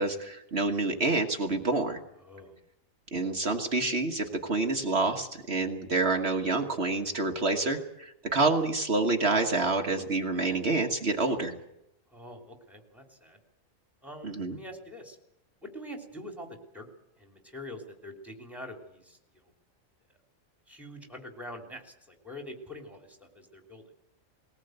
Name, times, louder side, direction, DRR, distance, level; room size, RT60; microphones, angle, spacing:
voice 1, 0.0-2.0 3.1-11.5 14.2-14.6, right 3 dB, 50° right, 4 dB, 1.6 m, -28 dB
voice 2, 2.2-2.6 12.1-13.4 14.0-15.2 15.6-16.9 17.2-19.5 20.7-23.8, left 1 dB, ahead, 2 dB, 3.2 m, -45 dB
20.5 x 18.5 x 7.9 m, 0.85 s
omnidirectional pair, 1.4 m